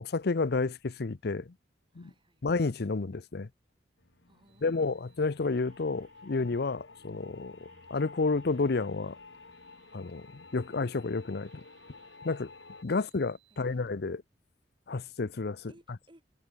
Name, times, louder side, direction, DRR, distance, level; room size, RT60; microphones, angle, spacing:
voice 1, 0.0-1.5 2.0-2.1 2.4-3.5 4.6-9.2 9.9-11.6 12.2-12.5 12.8-14.2 14.9-15.7, left 3 dB, 60° left, 0.7 m, -31 dB
voice 2, 1.9-2.4 4.3-4.7 13.0-13.1 13.5-13.8 15.7-16.2, right 1 dB, 30° right, 7.8 m, -61 dB
sound 1, 4.0-12.8, left 3 dB, 90° left, 3.0 m, -53 dB
sound 2, 4.4-13.9, right 6 dB, 90° right, 5.7 m, -67 dB
head